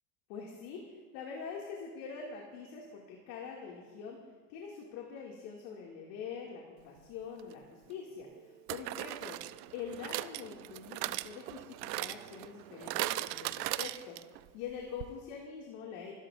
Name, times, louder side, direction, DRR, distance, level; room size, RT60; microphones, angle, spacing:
voice 1, 0.3-4.2 4.5-9.4 9.7-14.2 14.5-16.1, left 6 dB, 65° left, -1 dB, 2.3 m, -44 dB
sound 1, 7.4-7.5 8.7-14.4 14.7-14.8 15.0-15.1, right 17 dB, 80° right, 0.6 m, -38 dB
27.5 x 12.5 x 2.5 m, 1.5 s
supercardioid pair, 135°, 48 cm